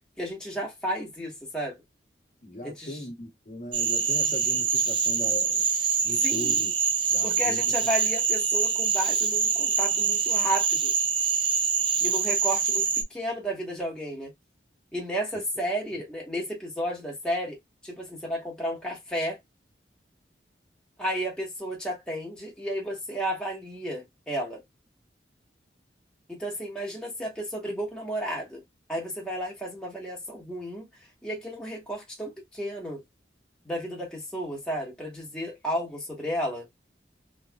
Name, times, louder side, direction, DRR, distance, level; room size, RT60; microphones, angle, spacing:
voice 1, 0.2-1.8 2.6-3.0 6.2-6.6 7.2-10.9 12.0-14.3 14.9-17.6 17.8-19.4 21.0-24.6 26.3-28.6 28.9-30.9 31.2-33.0 33.6-36.7, equal, 5° left, 1.3 m, -32 dB
voice 2, 2.4-5.6 6.0-6.7 7.1-7.7 15.9-16.0, left 1 dB, 40° left, 1.0 m, -38 dB
Cricket / Frog, 3.7-13.0, right 6 dB, 30° right, 0.4 m, -25 dB
3.3 x 3.1 x 2.3 m
head